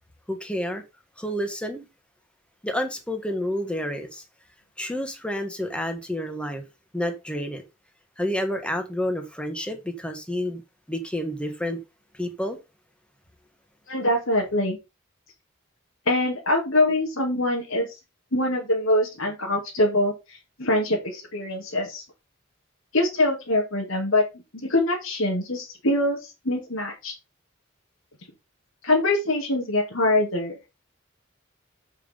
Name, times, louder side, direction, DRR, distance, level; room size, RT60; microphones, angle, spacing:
voice 1, 0.3-0.8 1.2-1.8 2.6-4.2 4.8-6.6 6.9-7.6 8.2-10.6 10.9-11.8 12.1-12.6, equal, 5° left, 1.6 m, -29 dB
voice 2, 13.9-14.8 16.1-17.9 18.3-22.0 22.9-27.1 28.8-30.7, left 1 dB, 80° left, 2.5 m, -24 dB
7.4 x 5.6 x 5.3 m
head